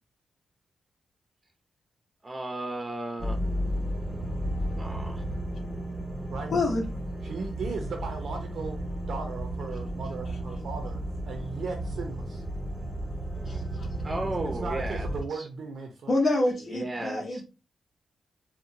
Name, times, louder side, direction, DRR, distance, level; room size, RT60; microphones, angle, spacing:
voice 1, 2.2-3.4 4.8-5.2 13.3-13.6 14.0-15.1 15.3-15.5 16.7-17.4, right 2 dB, 25° right, 0.5 m, -35 dB
sound 1, 3.2-15.2, right 1 dB, 5° left, 0.8 m, -33 dB
voice 2, 6.5-6.8 13.5-13.9 16.1-17.4, left 2 dB, 65° left, 0.6 m, -27 dB
voice 3, 7.2-8.8 9.1-12.4 14.4-16.1, right 4 dB, 75° right, 0.5 m, -37 dB
2.8 x 2.1 x 2.5 m
cardioid pair, 100°, 0 cm